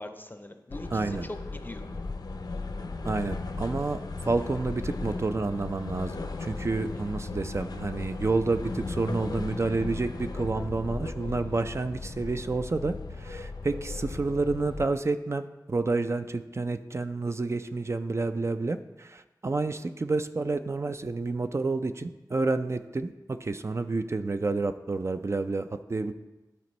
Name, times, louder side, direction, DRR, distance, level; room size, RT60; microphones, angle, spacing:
voice 1, 0.0-1.9 6.7-7.0 11.2-11.4, left 1 dB, 25° left, 7 dB, 0.5 m, -42 dB
sound 1, 0.7-14.9, left 3 dB, 70° left, 0.5 m, -36 dB
voice 2, 0.9-1.3 3.0-26.1, right 3 dB, 40° right, 9 dB, 0.4 m, -29 dB
12.0 x 4.3 x 3.1 m, 1.1 s
wide cardioid pair, 60°, 7 cm